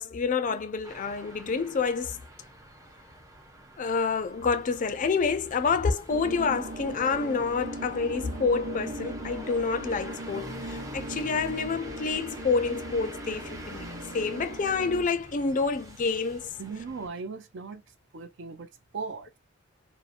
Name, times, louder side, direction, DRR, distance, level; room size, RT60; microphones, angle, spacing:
voice 1, 0.0-2.2 3.8-16.5, left 4 dB, 40° left, 0.4 m, -28 dB
sound 1, 0.8-17.1, right 1 dB, 15° right, 0.6 m, -47 dB
sound 2, 6.1-15.1, right 1 dB, 35° right, 0.9 m, -39 dB
voice 2, 16.6-17.8 18.1-18.7 18.9-19.4, right 4 dB, 65° right, 0.5 m, -38 dB
2.7 x 2.0 x 2.4 m
head